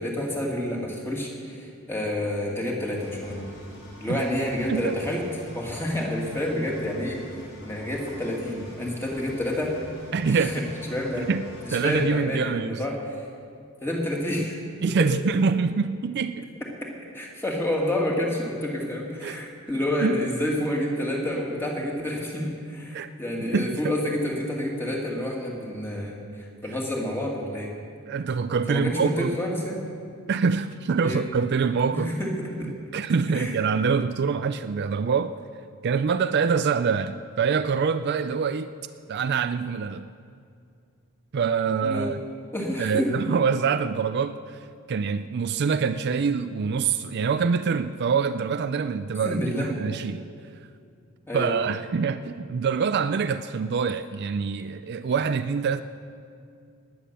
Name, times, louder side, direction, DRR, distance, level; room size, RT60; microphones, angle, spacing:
voice 1, 0.0-3.4 4.0-5.3 5.5-7.2 7.6-9.7 10.3-11.3 11.6-13.0 13.8-14.6 16.8-16.9 17.1-27.7 28.7-29.8 31.0-31.2 31.9-32.7 33.3-33.5 41.8-42.1 42.5-43.1 49.2-49.7 51.3-51.6, left 1 dB, 10° left, -2 dB, 2.3 m, -29 dB
Engine, 3.0-12.0, equal, 60° left, 4.8 m, -46 dB
voice 2, 4.7-5.0 10.1-10.6 11.2-12.8 14.8-16.5 19.2-19.4 20.0-20.2 22.9-23.1 23.4-23.9 28.1-29.4 30.3-32.2 32.9-35.4 35.8-38.7 39.1-40.1 41.3-42.2 42.8-44.6 44.9-50.3 51.3-55.8, right 5 dB, 50° right, 11 dB, 0.4 m, -25 dB
18.5 x 9.5 x 6.8 m, 2.3 s
head